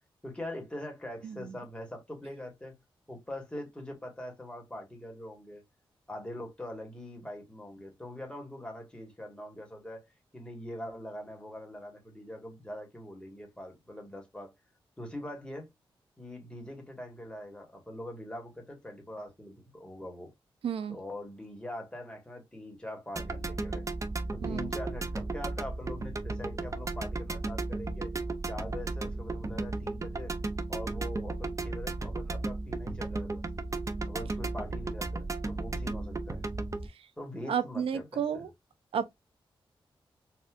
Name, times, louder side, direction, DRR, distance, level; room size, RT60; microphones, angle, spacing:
voice 1, 0.2-2.8 3.1-5.6 6.1-10.0 10.3-14.5 15.0-15.7 16.2-20.3 20.9-23.9 24.3-28.1 28.5-30.3 30.7-33.4 34.1-36.4 37.2-38.5, left 1 dB, 10° left, 1.7 m, -43 dB
voice 2, 20.6-21.0 24.4-24.7 37.5-38.5 38.9-39.1, right 7 dB, 85° right, 0.5 m, -32 dB
sound 1, 23.2-36.9, right 3 dB, 35° right, 0.6 m, -35 dB
4.2 x 2.4 x 2.5 m
cardioid pair, 70°, 9 cm